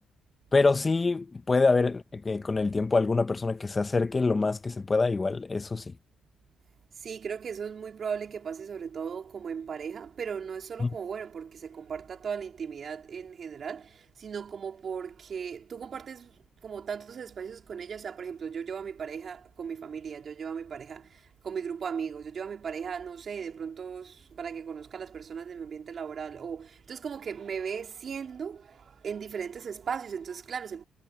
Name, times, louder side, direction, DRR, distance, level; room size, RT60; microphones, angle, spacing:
voice 1, 0.5-5.9 10.8-10.9, left 3 dB, 25° left, 0.8 m, -25 dB
voice 2, 7.0-30.8, right 6 dB, 50° right, 3.8 m, -37 dB
cardioid pair, 90°, 0 cm